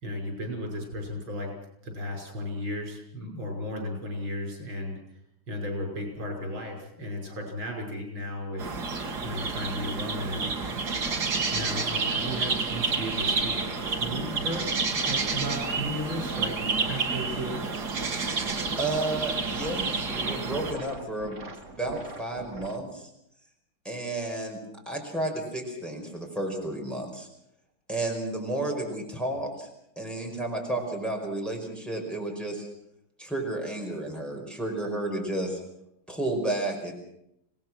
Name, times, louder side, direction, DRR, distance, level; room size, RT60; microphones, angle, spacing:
voice 1, 0.0-1.5 1.8-5.2 5.5-8.6 9.2-10.8 11.5-13.6 13.9-14.7 15.1-16.6 16.9-17.7, equal, 90° right, 2 dB, 6.6 m, -35 dB
sound 1, 8.6-20.7, right 4 dB, 55° right, 2.3 m, -29 dB
sound 2, 10.6-22.8, right 3 dB, 40° right, 2.2 m, -43 dB
voice 2, 18.8-21.4 21.8-23.1 23.8-24.6 24.8-27.3 27.9-29.7 29.9-32.7 33.2-35.6 36.1-36.9, right 2 dB, ahead, 0 dB, 5.1 m, -32 dB
26.0 x 18.5 x 6.3 m, 0.77 s
omnidirectional pair, 2.1 m